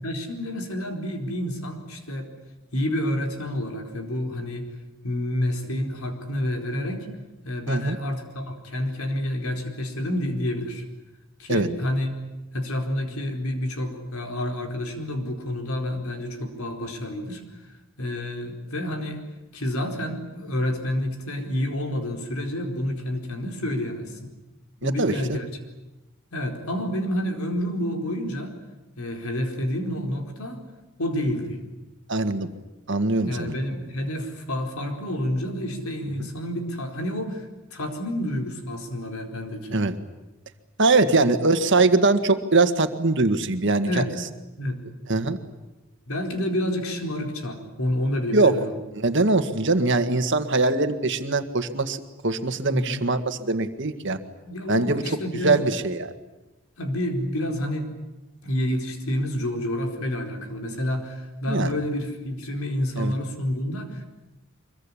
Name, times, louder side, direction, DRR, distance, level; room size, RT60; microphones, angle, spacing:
voice 1, 0.0-2.3 2.7-4.7 5.0-7.1 7.4-10.8 11.4-12.1 12.5-17.4 18.0-19.3 19.5-24.3 24.8-25.5 26.3-28.5 29.0-30.6 31.0-31.6 33.2-39.8 41.1-41.3 43.8-44.2 44.6-44.8 46.1-48.8 52.7-53.0 54.4-55.6 56.8-57.9 58.4-64.1, left 1 dB, 90° left, 4 dB, 4.6 m, -29 dB
voice 2, 24.8-25.4 32.1-32.5 32.9-33.5 36.2-36.3 39.7-39.9 40.8-44.0 45.1-45.4 48.3-48.5 49.0-54.2 54.7-55.0 55.4-56.1 61.5-61.7 63.0-63.1, right 3 dB, 60° right, 9 dB, 1.8 m, -22 dB
24.5 x 22.5 x 10.0 m, 1.1 s
head